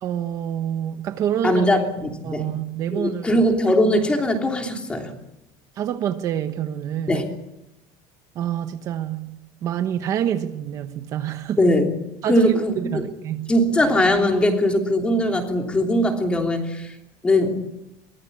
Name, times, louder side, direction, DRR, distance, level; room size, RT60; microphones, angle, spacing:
voice 1, 0.0-1.7 2.2-3.3 5.7-7.2 8.3-11.6 12.2-13.5, right 10 dB, 35° right, 1.0 m, -27 dB
voice 2, 1.4-2.5 2.9-5.1 7.1-7.3 11.6-11.9 12.3-13.1 13.5-16.9 17.2-17.6, left 1 dB, 10° left, 3.1 m, -20 dB
23.5 x 20.0 x 8.6 m
cardioid pair, 175°, 9 cm